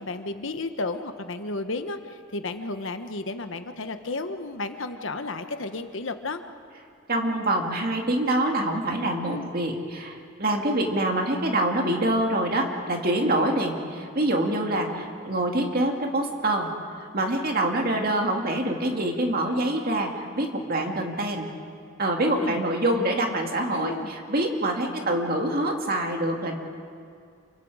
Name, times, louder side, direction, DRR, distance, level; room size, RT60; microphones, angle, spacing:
voice 1, 0.0-6.4 9.2-9.5 14.9-15.0 22.2-22.6 23.7-24.1, left 3 dB, 65° left, 8 dB, 1.2 m, -33 dB
voice 2, 7.1-21.5 22.0-26.5, right 1 dB, 45° right, 2 dB, 2.3 m, -25 dB
28.5 x 24.0 x 4.9 m, 2.3 s
head